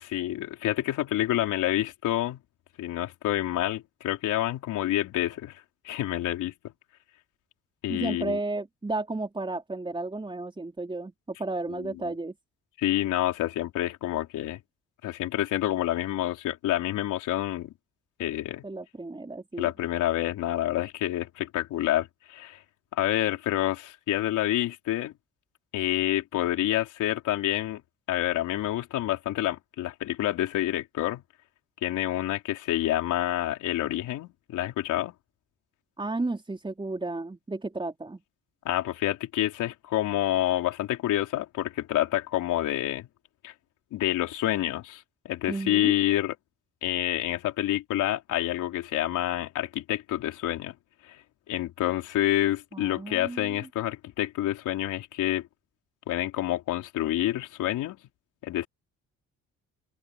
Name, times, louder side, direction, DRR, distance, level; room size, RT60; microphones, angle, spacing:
voice 1, 0.0-2.4 2.8-6.5 7.8-8.4 11.8-11.9 12.8-14.6 15.0-17.7 18.2-18.6 19.6-22.6 22.9-25.1 25.7-27.8 28.1-31.2 31.8-35.1 38.6-43.1 43.4-43.5 43.9-46.4 46.8-50.7 51.1-51.2 51.5-55.5 56.1-58.0 58.4-58.7, left 14 dB, 90° left, 3.9 m, -28 dB
voice 2, 7.9-12.3 18.6-19.7 36.0-38.2 45.5-45.9 52.7-53.6, right 2 dB, 15° right, 4.7 m, -33 dB
open air
cardioid pair, 90°, 30 cm